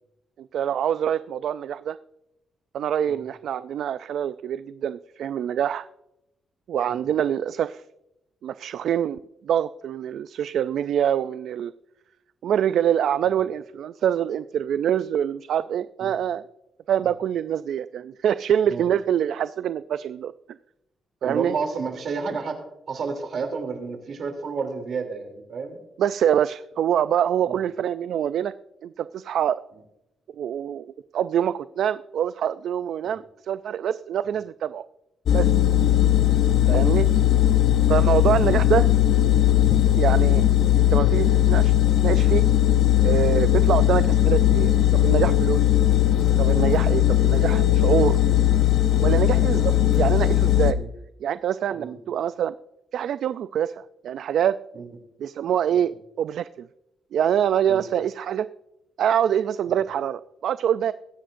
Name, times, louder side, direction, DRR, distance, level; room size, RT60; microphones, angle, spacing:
voice 1, 0.4-2.0 2.7-5.9 6.7-7.8 8.4-11.7 12.4-16.4 16.9-20.3 21.2-21.6 26.0-28.5 28.8-29.6 30.4-34.8 35.3-35.5 36.7-37.1 37.9-38.9 39.9-40.5 40.8-41.7 42.0-42.4 43.0-45.7 46.4-48.2 49.0-50.8 51.2-52.5 52.9-54.6 55.2-55.9 56.2-56.7 57.1-58.5 59.0-60.9, right 9 dB, 75° right, 14 dB, 0.3 m, -25 dB
voice 2, 21.2-25.8 27.5-27.7 33.0-33.2 34.3-34.4 35.8-36.0 37.4-37.5 38.0-38.1 44.4-44.5 45.9-46.0 46.8-47.0 49.1-49.3 50.8-50.9 51.7-51.9 54.7-54.9 55.7-55.9 57.7-57.9, right 5 dB, 60° right, 5 dB, 2.9 m, -32 dB
sound 1, 35.3-50.7, left 12 dB, 75° left, 0.7 m, -19 dB
22.0 x 10.0 x 2.6 m, 0.88 s
cardioid pair, 115°, 0 cm